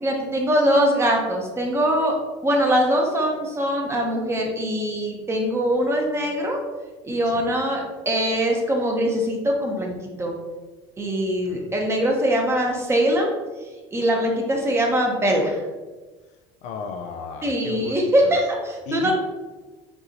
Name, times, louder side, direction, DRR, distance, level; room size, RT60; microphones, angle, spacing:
voice 1, 0.0-6.6 7.0-9.9 10.2-10.3 11.0-13.3 13.9-15.6 17.4-19.2, equal, 20° right, 0 dB, 1.0 m, -22 dB
voice 2, 16.6-18.4 18.9-19.2, left 4 dB, 65° left, 6 dB, 0.5 m, -34 dB
5.5 x 2.7 x 3.0 m, 1.2 s
supercardioid pair, 100°, 13 cm